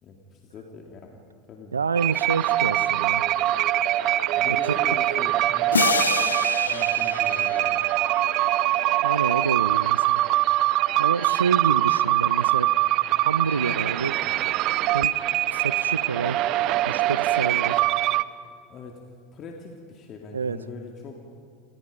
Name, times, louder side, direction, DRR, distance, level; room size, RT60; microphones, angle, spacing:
voice 1, 0.0-1.2 1.5-1.8 4.4-5.8 6.7-7.7 17.6-17.7 18.7-19.0 19.3-21.2, left 4 dB, 40° left, 1 dB, 2.9 m, -42 dB
voice 2, 1.7-3.2 9.0-10.2 11.0-12.7 13.1-14.1 14.9-15.1 15.5-16.4 16.9-17.8 20.3-20.6, right 5 dB, 85° right, 16 dB, 0.6 m, -28 dB
sound 1, 2.0-18.2, right 15 dB, 50° right, 0.9 m, -23 dB
sound 2, 5.7-8.5, left 5 dB, 85° left, 1.1 m, -28 dB
29.0 x 29.0 x 5.3 m, 2.3 s
figure-of-eight pair, 80°, 0 cm